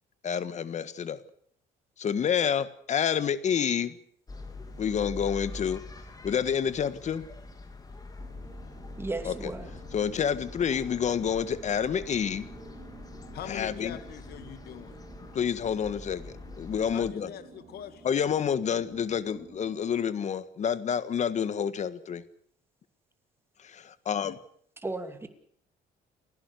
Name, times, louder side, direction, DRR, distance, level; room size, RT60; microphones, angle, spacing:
voice 1, 0.2-1.2 2.0-4.0 4.8-5.8 6.2-7.2 9.2-9.3 9.9-12.5 13.5-14.0 15.3-17.3 18.0-22.2 23.6-24.4, left 7 dB, 45° left, 14 dB, 1.5 m, -28 dB
Street Calm Very light traffic birds pedestrians, 4.3-17.1, left 2 dB, 20° left, 2.9 m, -44 dB
sound 1, 8.2-19.8, right 3 dB, 30° right, 7.4 m, -51 dB
voice 2, 9.0-9.7 24.8-25.3, right 2 dB, 15° right, 8 dB, 2.6 m, -35 dB
voice 3, 13.3-15.0 16.9-18.1, left 10 dB, 65° left, 10 dB, 2.2 m, -42 dB
30.0 x 11.0 x 8.3 m, 0.63 s
cardioid pair, 110°, 17 cm